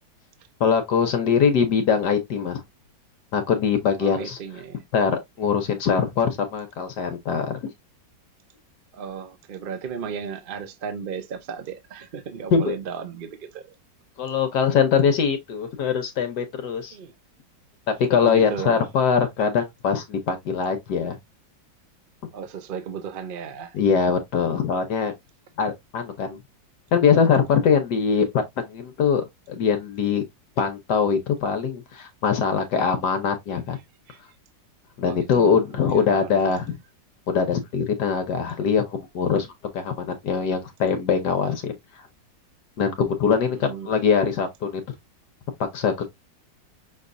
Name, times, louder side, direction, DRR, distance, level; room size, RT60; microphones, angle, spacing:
voice 1, 0.6-2.6 3.3-4.4 4.9-7.7 12.5-12.6 14.2-17.0 17.9-21.2 23.7-25.1 25.6-26.4 26.9-30.2 30.6-33.8 35.0-36.8 37.3-39.5 39.7-41.7 42.8-44.8 45.7-46.1, left 6 dB, 65° left, 1.3 m, -22 dB
voice 2, 4.0-4.8 8.9-13.7 16.9-17.1 18.2-18.9 22.3-23.8 34.1-34.2 35.1-36.6 43.5-44.4, right 7 dB, 90° right, 0.4 m, -35 dB
6.0 x 3.2 x 2.5 m
omnidirectional pair, 2.0 m